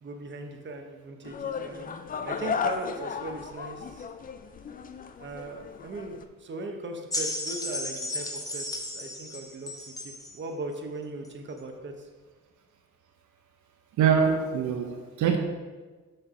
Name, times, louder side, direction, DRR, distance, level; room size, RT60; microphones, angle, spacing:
voice 1, 0.0-1.9 2.2-4.1 5.2-9.7 10.0-11.9, right 2 dB, 40° right, 4 dB, 0.8 m, -38 dB
sound 1, 1.2-6.2, left 6 dB, 30° left, 0.4 m, -35 dB
sound 2, 7.1-10.4 11.3-11.4, left 1 dB, 10° left, 0.8 m, -34 dB
voice 2, 14.0-15.4, right 7 dB, 75° right, 4 dB, 0.7 m, -24 dB
5.9 x 3.3 x 5.5 m, 1.4 s
cardioid pair, 90°, 30 cm